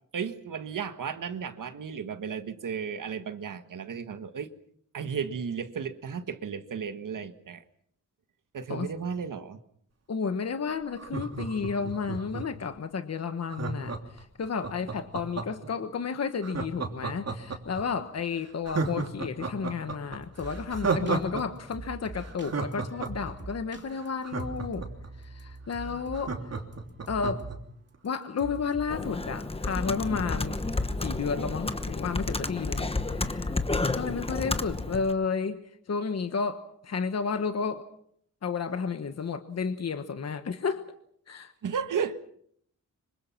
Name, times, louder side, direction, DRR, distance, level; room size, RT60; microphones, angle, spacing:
voice 1, 0.1-4.5 4.9-7.6 8.5-9.6 41.6-42.2, right 6 dB, 75° right, 9 dB, 1.7 m, -34 dB
voice 2, 10.1-24.9 25.2-26.4 27.1-27.5 28.0-30.6 31.0-33.5 33.9-35.6 35.9-37.9 38.4-40.8 41.3-41.5, left 5 dB, 55° left, 9 dB, 1.3 m, -32 dB
Laughter, 10.9-12.6 13.5-15.7 16.4-17.8 18.2-18.3 18.6-21.4 21.7-21.8 22.2-25.1 25.5-25.6 25.8-27.6 27.9-28.0, right 4 dB, 50° right, 3.1 m, -32 dB
sound 1, 20.2-27.6 27.9-28.9 29.2-29.4 29.7-31.5, right 3 dB, 35° right, 2.3 m, -44 dB
Computer keyboard, 28.9-35.1, left 3 dB, 20° left, 1.1 m, -31 dB
26.0 x 25.0 x 5.9 m, 0.67 s
wide cardioid pair, 160°, 32 cm